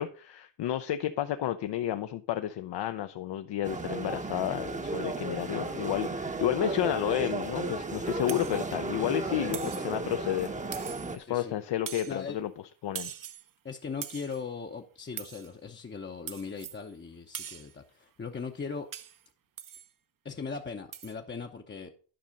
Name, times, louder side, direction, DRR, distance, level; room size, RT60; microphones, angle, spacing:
voice 1, 0.0-10.5 10.8-12.5 12.8-13.1, left 12 dB, 65° left, 0.7 m, -31 dB
sound 1, 3.6-11.2, right 3 dB, 15° right, 0.9 m, -34 dB
sound 2, 8.3-8.6 9.5-9.9 10.7-11.2 11.9-12.2 12.9-13.5 14.0-14.4 15.2-15.5 16.3-16.8 17.3-17.7 18.9-19.2 19.6-19.9 20.9-21.1, right 9 dB, 45° right, 0.7 m, -41 dB
voice 2, 11.2-11.6 12.1-12.4 13.6-18.9 20.2-21.9, left 5 dB, 25° left, 0.8 m, -39 dB
10.5 x 5.4 x 5.2 m
cardioid pair, 90°, 46 cm